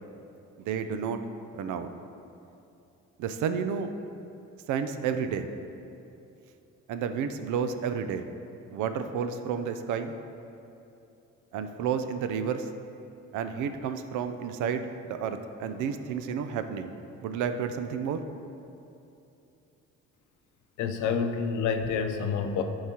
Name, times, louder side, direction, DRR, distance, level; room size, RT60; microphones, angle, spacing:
voice 1, 0.6-1.2 1.5-1.9 3.2-3.9 4.7-5.5 6.9-8.2 8.7-10.2 11.5-12.7 13.3-18.2, right 7 dB, 75° right, 9 dB, 0.5 m, -31 dB
voice 2, 20.8-22.6, left 6 dB, 75° left, 6 dB, 0.6 m, -28 dB
11.0 x 4.8 x 2.9 m, 2.8 s
cardioid pair, 115°, 30 cm